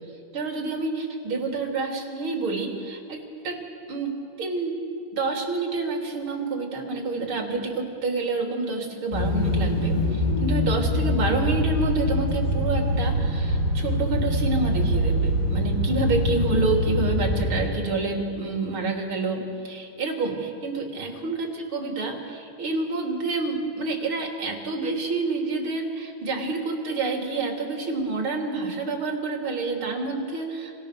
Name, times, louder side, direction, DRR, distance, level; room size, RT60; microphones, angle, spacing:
voice 1, 0.3-3.6 3.9-4.1 4.4-4.8 5.2-30.8, right 3 dB, 30° right, 1 dB, 3.6 m, -28 dB
sound 1, 9.1-17.5, left 1 dB, 45° left, 6.2 m, -24 dB
29.0 x 29.0 x 6.9 m, 2.5 s
omnidirectional pair, 5.3 m